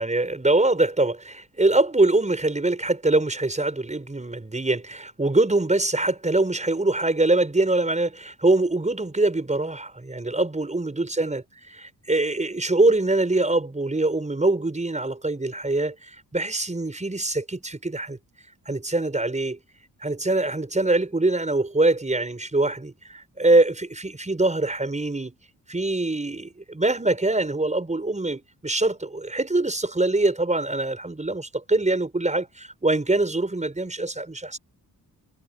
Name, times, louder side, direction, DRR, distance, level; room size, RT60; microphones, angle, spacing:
voice 1, 0.0-11.4 12.1-18.2 18.7-19.6 20.0-25.4 25.7-34.6, right 2 dB, 20° right, 6.4 m, -23 dB
cardioid pair, 65°, 36 cm